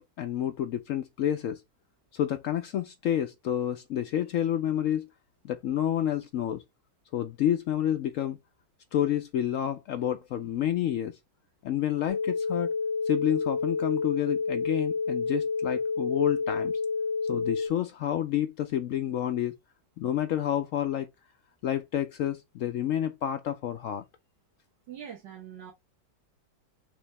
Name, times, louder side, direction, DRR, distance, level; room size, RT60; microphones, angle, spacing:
voice 1, 0.0-1.6 2.1-5.1 5.4-6.6 7.1-8.4 8.9-11.1 11.6-12.7 13.1-16.8 17.2-19.5 20.0-21.1 21.6-24.0, left 10 dB, 75° left, 0.7 m, -29 dB
sound 1, 12.1-17.7, left 4 dB, 35° right, 1.5 m, -29 dB
voice 2, 24.9-25.7, right 9 dB, 80° right, 1.8 m, -43 dB
5.1 x 2.9 x 3.3 m
omnidirectional pair, 1.9 m